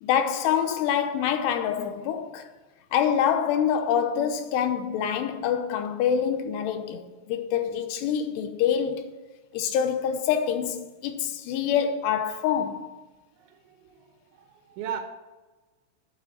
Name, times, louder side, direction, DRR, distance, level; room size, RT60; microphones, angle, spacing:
voice 1, 0.0-2.5 2.9-9.1 9.5-12.9, left 8 dB, 80° left, 2.9 m, -26 dB
voice 2, 13.3-15.0, right 8 dB, 90° right, 3.2 m, -38 dB
8.6 x 7.9 x 7.1 m
omnidirectional pair, 5.0 m